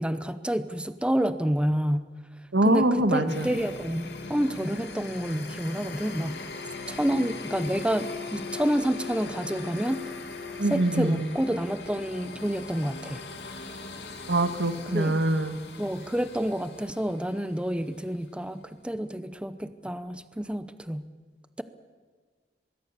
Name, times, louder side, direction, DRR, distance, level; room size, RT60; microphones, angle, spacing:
voice 1, 0.0-2.1 2.6-6.4 6.9-10.0 10.7-13.2 14.9-15.2 15.8-21.1, equal, 5° right, 12 dB, 0.7 m, -29 dB
voice 2, 2.5-3.5 10.6-11.3 14.3-15.5, right 2 dB, 85° right, 10 dB, 1.7 m, -24 dB
sound 1, 3.3-18.0, left 4 dB, 70° left, 3.0 m, -40 dB
24.0 x 21.0 x 6.9 m, 1.5 s
head